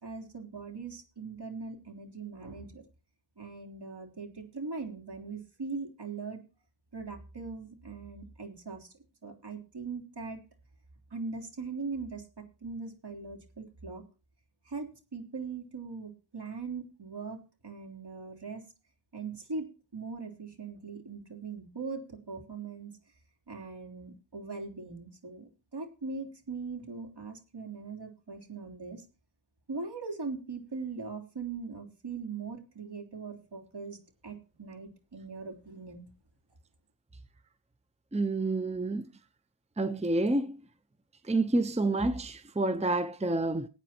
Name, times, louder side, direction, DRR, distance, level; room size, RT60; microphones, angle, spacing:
voice 1, 0.0-2.8 3.4-6.4 6.9-8.9 9.2-10.4 11.1-14.0 14.7-18.6 19.1-19.7 19.9-22.9 23.5-29.0 29.7-34.0 34.2-36.1, right 4 dB, 60° right, 3.5 m, -40 dB
voice 2, 38.1-39.0 39.8-40.6 41.3-43.7, right 2 dB, 15° right, 0.7 m, -28 dB
19.5 x 8.9 x 2.9 m
wide cardioid pair, 65°, 45 cm